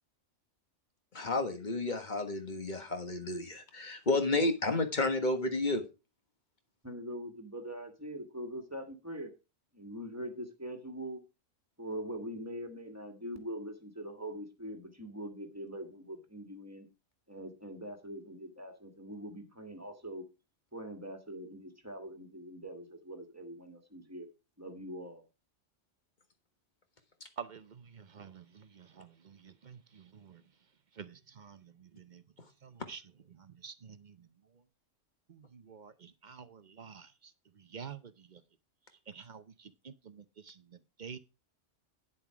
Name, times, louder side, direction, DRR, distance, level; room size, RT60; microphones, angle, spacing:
voice 1, 1.1-5.8, left 2 dB, 40° left, 1.6 m, -31 dB
voice 2, 6.8-9.3 9.7-11.2 11.8-16.9 17.3-20.3 20.7-24.3 24.6-25.2, equal, 10° right, 1.8 m, -43 dB
voice 3, 27.4-30.4 30.9-32.2 32.6-33.0 33.3-34.3 35.3-38.4 39.1-41.2, right 6 dB, 45° right, 0.7 m, -49 dB
10.5 x 7.2 x 4.8 m
omnidirectional pair, 1.3 m